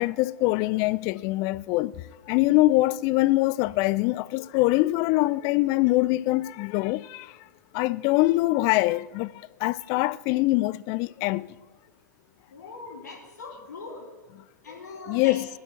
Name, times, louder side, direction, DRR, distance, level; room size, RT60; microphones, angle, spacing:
voice 1, 0.0-1.9 2.3-7.3 7.7-11.5 15.1-15.5, left 19 dB, 40° left, 0.4 m, -24 dB
voice 2, 12.5-14.1 14.6-15.4, left 3 dB, 70° left, 3.1 m, -41 dB
19.5 x 7.6 x 4.6 m
figure-of-eight pair, 95°, 10 cm